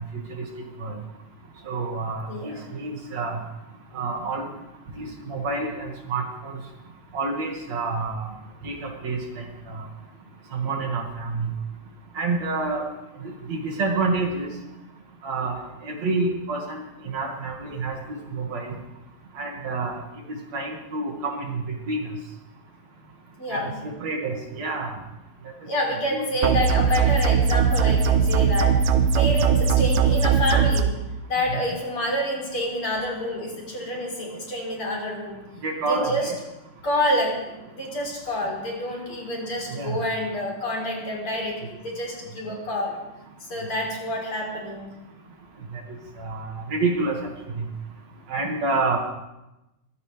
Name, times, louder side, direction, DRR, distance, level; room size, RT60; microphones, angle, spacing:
voice 1, 1.7-3.4 3.9-4.5 5.0-6.6 7.1-8.3 8.6-8.8 9.0-9.8 10.5-11.5 12.1-12.8 13.5-14.5 15.2-18.0 18.3-18.7 19.4-20.0 20.5-22.0 23.5-24.9 25.9-26.3 35.6-36.4 39.7-40.0 46.2-47.2 48.3-49.0, right 3 dB, 60° right, 0 dB, 3.3 m, -28 dB
voice 2, 2.3-2.6 23.4-23.8 25.6-31.0 31.3-35.4 35.9-36.3 36.8-43.0 43.5-44.9, left 1 dB, 45° left, -2 dB, 4.8 m, -28 dB
sound 1, 26.4-30.8, right 6 dB, 75° right, 2.3 m, -20 dB
22.5 x 16.0 x 3.5 m, 0.96 s
omnidirectional pair, 3.5 m